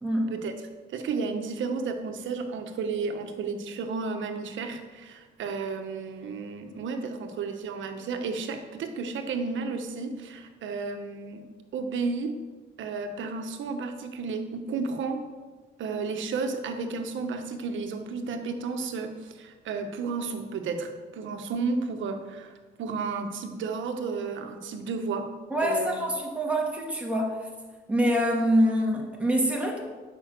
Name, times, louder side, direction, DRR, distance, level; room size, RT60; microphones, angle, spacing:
voice 1, 0.0-0.3 25.5-27.4 27.9-29.8, equal, 5° right, -2 dB, 2.3 m, -25 dB
voice 2, 0.9-11.4 11.7-12.4 12.8-15.2 15.8-22.5 22.8-25.3 25.6-26.0, right 4 dB, 75° right, 6 dB, 1.2 m, -32 dB
9.9 x 5.7 x 6.7 m, 1.4 s
cardioid pair, 90°, 20 cm